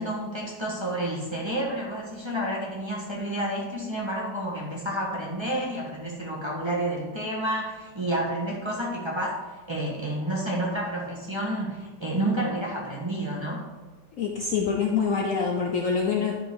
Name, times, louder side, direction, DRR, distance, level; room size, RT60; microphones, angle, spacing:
voice 1, 0.0-9.4 9.7-13.6, right 1 dB, 15° right, -4 dB, 1.6 m, -30 dB
voice 2, 14.2-16.3, left 5 dB, 60° left, 0 dB, 1.0 m, -25 dB
10.0 x 5.0 x 4.8 m, 1.3 s
omnidirectional pair, 1.9 m